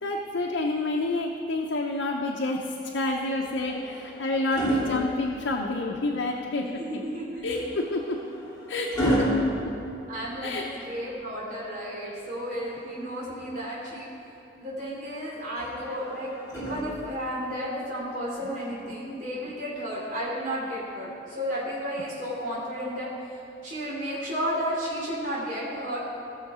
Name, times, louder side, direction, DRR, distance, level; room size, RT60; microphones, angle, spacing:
voice 1, 0.0-7.0 7.4-8.3 8.7-9.7 10.4-10.7, left 2 dB, 75° left, -1 dB, 0.7 m, -29 dB
sound 1, 3.4-5.9 7.5-10.7 12.4-13.6 15.6-17.4 18.6-18.8, equal, 20° left, 2.3 m, -32 dB
voice 2, 6.8-7.6 10.1-14.1 14.6-23.1 23.6-26.0, equal, 45° right, -7 dB, 2.9 m, -33 dB
16.0 x 6.4 x 4.9 m, 3.0 s
head